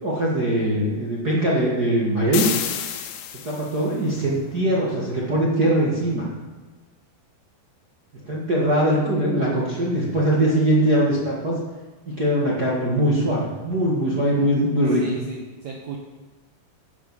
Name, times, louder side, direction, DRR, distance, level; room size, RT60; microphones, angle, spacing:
voice 1, 0.0-2.5 3.4-6.3 8.2-11.6 12.1-15.0, right 1 dB, 45° right, -5 dB, 1.2 m, -21 dB
sound 1, 2.3-3.9, left 9 dB, 75° left, 2.7 m, -29 dB
voice 2, 15.0-16.0, right 5 dB, 80° right, 0 dB, 1.6 m, -34 dB
10.0 x 9.1 x 7.2 m, 1.3 s
omnidirectional pair, 4.9 m